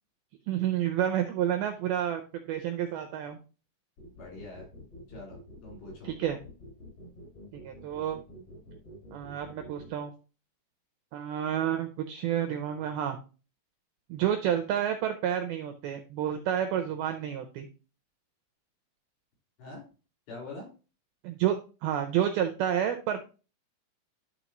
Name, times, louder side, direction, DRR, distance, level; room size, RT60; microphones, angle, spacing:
voice 1, 0.5-3.4 6.0-6.4 7.5-8.2 9.1-10.1 11.1-13.2 14.1-17.7 21.2-21.6 21.8-23.2, right 10 dB, 85° right, 6 dB, 2.2 m, -30 dB
sound 1, 4.0-9.9, equal, 50° left, 6.3 m, -48 dB
voice 2, 4.2-4.7 5.1-6.1 19.6-19.8 20.3-20.7, left 2 dB, 75° left, -3 dB, 6.3 m, -44 dB
12.5 x 4.3 x 3.0 m, 0.34 s
omnidirectional pair, 5.2 m